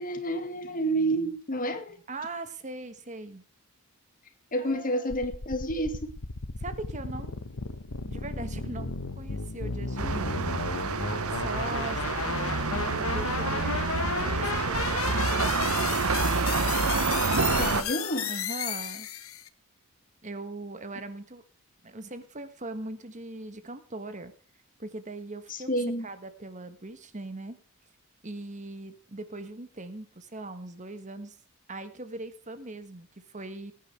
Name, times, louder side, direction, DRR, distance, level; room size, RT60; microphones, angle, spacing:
voice 1, 0.0-2.0 4.5-6.1 17.6-18.3 25.5-26.1, right 1 dB, 40° left, 2.1 m, -29 dB
voice 2, 2.1-3.4 4.6-5.1 6.6-7.4 8.1-10.6 11.3-16.0 18.3-19.1 20.2-21.4 21.8-24.3 24.8-25.7 26.0-27.6 28.2-31.4 31.7-33.7, right 2 dB, 35° right, 1.4 m, -40 dB
sound 1, 5.1-19.5, left 5 dB, 70° left, 1.1 m, -34 dB
sound 2, 10.0-17.8, right 4 dB, 90° right, 1.1 m, -28 dB
21.0 x 10.0 x 3.4 m
head